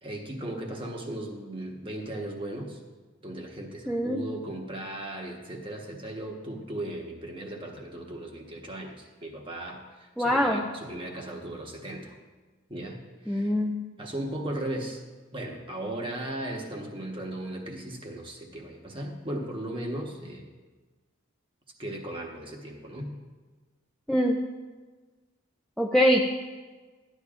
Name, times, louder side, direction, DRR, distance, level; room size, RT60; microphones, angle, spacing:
voice 1, 0.0-2.8 3.2-12.2 12.7-13.6 14.0-15.0 15.3-20.5 21.8-23.2, right 1 dB, 25° right, 1 dB, 1.1 m, -37 dB
voice 2, 3.9-4.2 10.2-10.6 13.3-13.8 24.1-24.4 25.8-26.2, equal, ahead, -2 dB, 0.4 m, -23 dB
13.5 x 10.0 x 2.5 m, 1.3 s
head